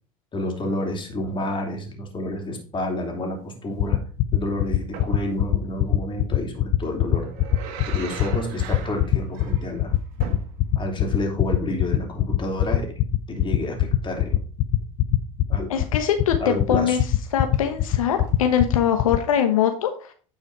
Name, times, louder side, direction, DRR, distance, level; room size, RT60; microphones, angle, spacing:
voice 1, 0.3-4.0 4.3-7.3 7.9-9.9 10.7-12.9 13.3-14.4 15.5-15.8 16.4-17.0, left 1 dB, 30° left, 2 dB, 3.0 m, -29 dB
sound 1, 3.8-19.2, left 15 dB, 50° left, 0.8 m, -20 dB
sound 2, 4.9-5.2 6.8-11.0 11.3-11.4 17.2-17.6 18.2-18.7 19.5-19.6, right 7 dB, 65° right, 1.5 m, -39 dB
voice 2, 15.7-17.0 17.3-20.1, left 8 dB, 85° left, 6 dB, 1.0 m, -22 dB
9.4 x 5.0 x 4.7 m, 0.40 s
hypercardioid pair, 85°, 17 cm